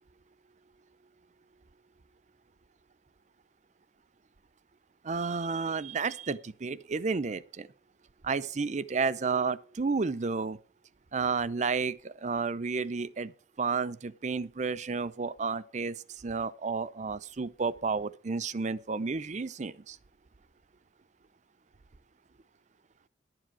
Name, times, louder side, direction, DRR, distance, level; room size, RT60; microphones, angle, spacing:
voice 1, 5.0-7.7 8.2-10.6 11.1-13.3 13.6-20.0, right 4 dB, 40° right, 0.6 m, -31 dB
11.5 x 7.6 x 6.2 m
head